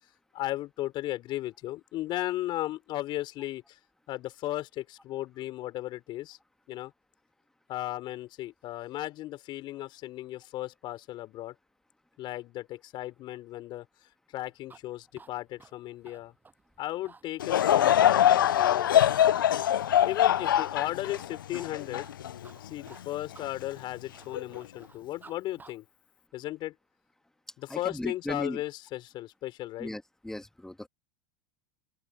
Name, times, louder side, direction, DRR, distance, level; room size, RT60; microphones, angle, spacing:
voice 1, 0.3-3.8 4.1-6.4 6.7-6.9 7.7-11.5 12.2-13.9 14.3-16.3 16.8-19.2 20.0-22.1 22.6-25.8 26.3-26.8 27.6-29.9, left 15 dB, 45° left, 5.2 m, -36 dB
sound 1, 14.4-25.3 25.6-25.7, right 4 dB, 15° right, 7.1 m, -54 dB
Laughter / Crowd, 17.4-22.9 23.4-23.5 24.3-24.6, left 11 dB, 85° left, 0.4 m, -23 dB
voice 2, 27.7-28.6 29.8-30.9, left 1 dB, 5° left, 1.7 m, -37 dB
open air
hypercardioid pair, 100°, 11 cm